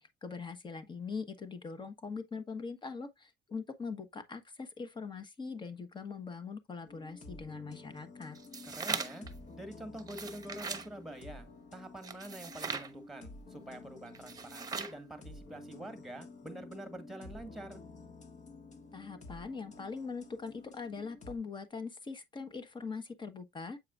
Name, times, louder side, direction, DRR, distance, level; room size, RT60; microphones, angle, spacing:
voice 1, 0.0-8.4 18.9-23.8, left 5 dB, 30° left, 1.2 m, -42 dB
sound 1, 6.8-21.4, left 2 dB, 45° left, 1.5 m, -51 dB
sound 2, 8.4-9.3 10.0-10.9 12.0-12.9 14.2-15.0, right 5 dB, 20° right, 1.0 m, -39 dB
voice 2, 8.7-9.3 9.5-17.8, right 1 dB, ahead, 1.8 m, -46 dB
8.1 x 4.8 x 2.4 m
cardioid pair, 110°, 17 cm